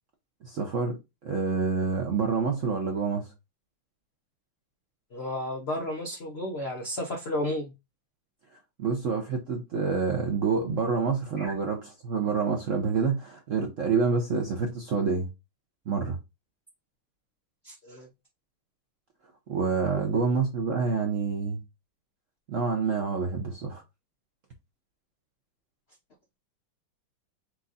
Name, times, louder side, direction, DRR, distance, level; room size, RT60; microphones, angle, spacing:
voice 1, 0.4-3.3 8.8-15.3 15.9-16.2 19.5-21.6 22.5-23.8, right 5 dB, 70° right, 0.7 m, -27 dB
voice 2, 5.1-7.7 11.4-11.5 17.6-18.1 19.9-20.0, left 1 dB, 55° left, 0.7 m, -33 dB
4.6 x 2.5 x 3.9 m
omnidirectional pair, 2.3 m